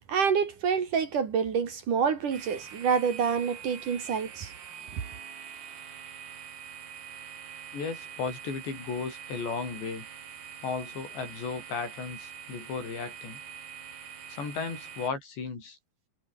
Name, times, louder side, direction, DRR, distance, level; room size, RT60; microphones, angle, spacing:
voice 1, 0.1-4.5, right 6 dB, 50° right, 3.6 m, -27 dB
sound 1, 2.3-15.1, right 8 dB, 70° right, 5.5 m, -44 dB
voice 2, 7.7-10.1 10.6-13.4 14.3-15.8, left 5 dB, 80° left, 9.0 m, -35 dB
omnidirectional pair, 5.0 m